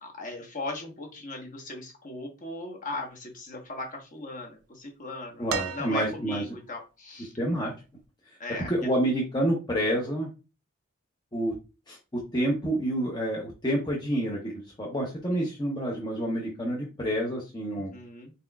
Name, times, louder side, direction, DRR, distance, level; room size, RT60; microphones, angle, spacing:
voice 1, 0.0-7.3 8.4-8.7 17.7-18.3, left 2 dB, 35° left, 1 dB, 1.1 m, -38 dB
voice 2, 5.4-6.5 7.2-7.7 8.6-10.3 11.3-11.5 11.9-17.9, right 1 dB, 20° left, -3 dB, 0.7 m, -28 dB
sound 1, 5.5-6.5 8.0-8.1, right 7 dB, 85° right, 0.5 m, -35 dB
4.2 x 4.0 x 2.3 m, 0.30 s
head